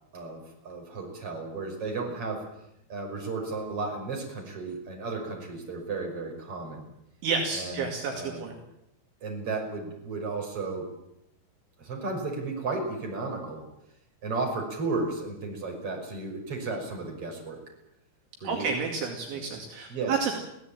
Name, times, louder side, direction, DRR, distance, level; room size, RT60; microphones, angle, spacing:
voice 1, 0.1-2.5 2.9-6.9 7.5-8.4 9.2-10.9 11.8-13.6 14.2-17.6 18.4-18.7 19.3-19.6 19.9-20.4, right 3 dB, 25° right, 1 dB, 6.4 m, -34 dB
voice 2, 7.2-8.6 18.4-20.4, right 5 dB, 65° right, 1 dB, 4.7 m, -30 dB
24.5 x 16.5 x 8.8 m, 0.81 s
omnidirectional pair, 5.9 m